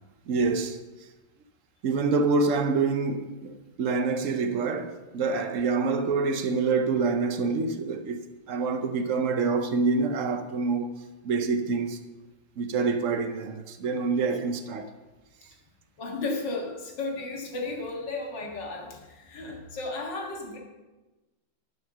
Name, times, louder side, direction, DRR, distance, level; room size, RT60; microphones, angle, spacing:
voice 1, 0.3-0.8 1.8-10.9 11.2-12.0 12.6-14.9, right 4 dB, 60° right, 0.8 m, -26 dB
voice 2, 16.0-20.6, left 3 dB, 65° left, 2.3 m, -34 dB
11.0 x 5.7 x 6.6 m
omnidirectional pair, 2.2 m